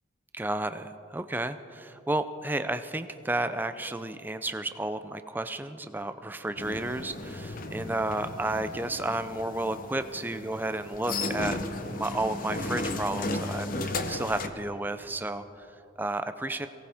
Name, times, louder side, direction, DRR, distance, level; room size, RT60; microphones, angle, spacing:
voice 1, 0.3-11.6 11.8-15.7 16.0-16.7, right 2 dB, 10° right, 10 dB, 0.4 m, -32 dB
sound 1, 6.6-14.5, left 2 dB, 45° left, 0.8 m, -35 dB
23.0 x 17.5 x 3.5 m, 3.0 s
head